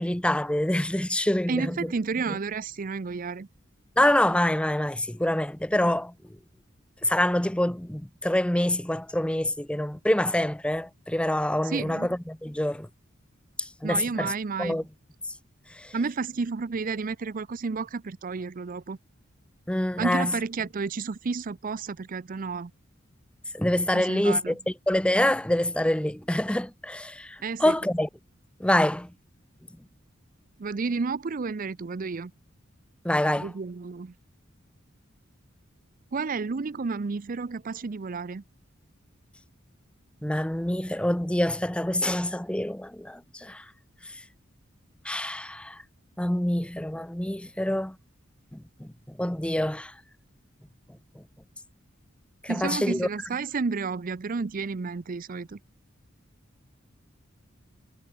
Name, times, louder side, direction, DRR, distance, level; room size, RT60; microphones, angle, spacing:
voice 1, 0.0-1.8 4.0-6.1 7.0-12.9 13.6-14.3 14.6-14.8 15.8-15.9 19.7-20.3 23.5-28.1 28.6-29.1 33.0-33.5 40.2-43.6 45.0-45.8 46.2-48.0 48.5-49.9 52.4-53.1, left 1 dB, 5° left, 0.7 m, -26 dB
voice 2, 1.5-3.5 11.6-12.1 13.8-14.8 15.9-19.0 20.0-22.7 23.9-24.6 27.4-27.8 30.6-32.3 33.4-34.1 36.1-38.4 52.5-55.6, right 4 dB, 45° right, 0.5 m, -31 dB
head